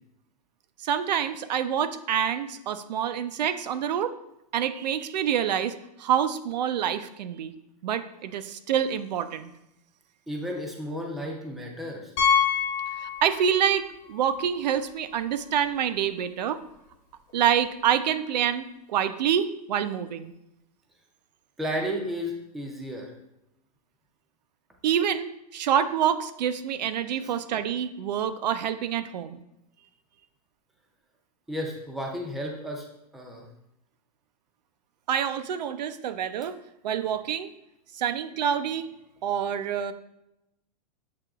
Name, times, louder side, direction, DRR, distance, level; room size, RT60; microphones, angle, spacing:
voice 1, 0.8-4.1 4.5-7.5 7.8-9.5 13.0-16.6 17.3-20.3 24.8-29.4 35.1-36.5 36.8-37.5 37.9-38.9 39.2-39.9, right 9 dB, 85° right, 11 dB, 0.4 m, -27 dB
voice 2, 10.3-12.1 21.6-23.1 27.2-27.3 31.5-32.9 33.1-33.5, equal, ahead, 0 dB, 0.4 m, -33 dB
Piano, 12.2-13.8 14.0-14.2 14.8-14.9 15.1-15.2 17.3-17.4, left 7 dB, 40° left, 1.0 m, -26 dB
7.5 x 2.8 x 2.3 m, 0.84 s
supercardioid pair, 150°, 21 cm